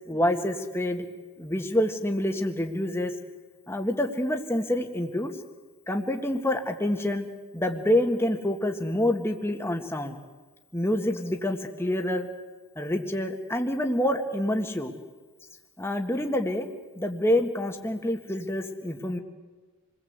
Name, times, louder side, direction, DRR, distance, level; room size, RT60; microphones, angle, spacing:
voice 1, 0.1-1.1 1.4-3.1 3.7-5.3 5.9-7.3 7.5-10.2 10.7-12.3 12.8-14.9 15.8-16.7 17.0-19.2, left 1 dB, 10° left, 4 dB, 1.8 m, -27 dB
28.5 x 21.0 x 8.2 m, 1.3 s
head